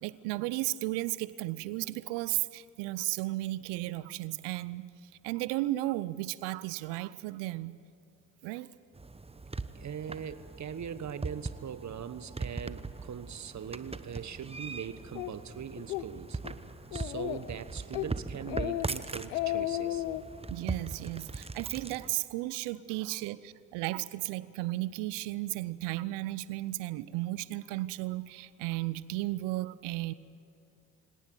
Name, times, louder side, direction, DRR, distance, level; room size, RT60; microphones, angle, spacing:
voice 1, 0.0-4.9 5.2-7.7 8.4-8.7 20.5-30.1, right 18 dB, 70° right, 18 dB, 0.8 m, -34 dB
sound 1, 8.9-22.1, right 3 dB, 15° right, 1.1 m, -40 dB
voice 2, 9.7-16.4 16.9-20.0 22.9-23.2, right 8 dB, 40° right, 14 dB, 1.3 m, -41 dB
Speech, 15.2-15.3 15.8-16.1 16.4-16.5 16.9-17.5 17.9-18.1 18.5-18.9 19.2-20.2, left 15 dB, 80° left, 0.8 m, -33 dB
25.0 x 18.5 x 9.5 m, 2.5 s
hypercardioid pair, 50°, 42 cm